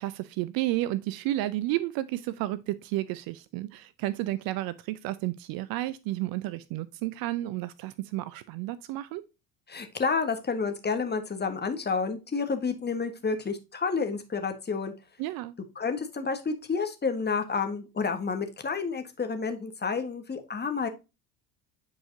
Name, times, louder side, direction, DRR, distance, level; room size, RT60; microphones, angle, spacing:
voice 1, 0.0-9.2 15.2-15.5, right 16 dB, 50° right, 0.6 m, -32 dB
voice 2, 9.7-14.9 15.7-20.9, left 5 dB, 20° left, 1.4 m, -30 dB
8.8 x 4.8 x 2.7 m
figure-of-eight pair, 65°, 48 cm